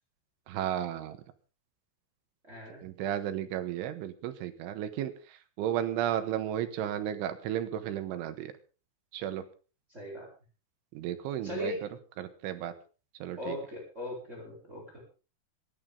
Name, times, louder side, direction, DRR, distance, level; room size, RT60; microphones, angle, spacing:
voice 1, 0.5-1.2 2.8-5.1 5.6-8.5 9.1-9.4 10.9-11.7 12.2-12.7 13.2-13.6, right 11 dB, 90° right, 10 dB, 3.9 m, -33 dB
voice 2, 2.5-2.8 9.9-10.3 11.4-11.9 13.4-15.0, left 1 dB, 15° right, -2 dB, 7.0 m, -38 dB
27.0 x 11.0 x 3.8 m, 0.37 s
omnidirectional pair, 5.4 m